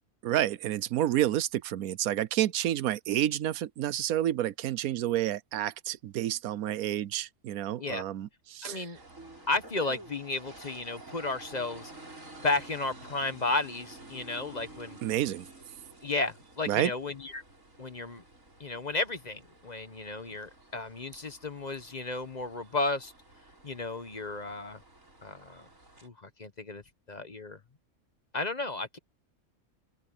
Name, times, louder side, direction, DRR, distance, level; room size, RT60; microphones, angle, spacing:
voice 1, 0.2-8.9 15.0-15.5 16.7-16.9, right 12 dB, 80° right, 1.2 m, -29 dB
voice 2, 8.6-9.0 9.5-12.2 12.4-15.0 16.0-17.4 17.8-18.2 18.6-23.1 23.6-24.8 25.2-25.7 26.0-26.8 27.1-27.6 28.3-29.0, left 3 dB, 35° left, 1.0 m, -33 dB
sound 1, 8.9-26.1, right 2 dB, 60° right, 7.2 m, -51 dB
open air
omnidirectional pair, 1.5 m